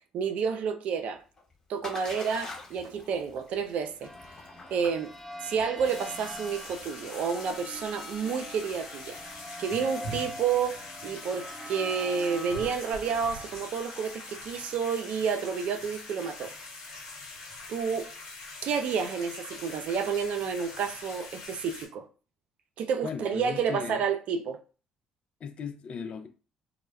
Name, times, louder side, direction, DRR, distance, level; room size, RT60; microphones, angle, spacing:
voice 1, 0.1-1.2 1.7-4.1 4.7-5.1 5.4-9.2 9.6-16.5 17.7-18.1 18.6-22.1 22.8-24.6, right 6 dB, 60° right, 0.4 m, -30 dB
Splash splatter, 1.1-11.0, left 3 dB, 25° left, 0.9 m, -48 dB
sound 1, 4.0-17.2, equal, 5° left, 0.6 m, -45 dB
sound 2, 5.8-21.9, left 2 dB, 85° left, 0.9 m, -43 dB
voice 2, 23.0-24.1 25.4-26.3, left 6 dB, 50° left, 0.4 m, -37 dB
2.1 x 2.0 x 3.2 m
hypercardioid pair, 50°, 2 cm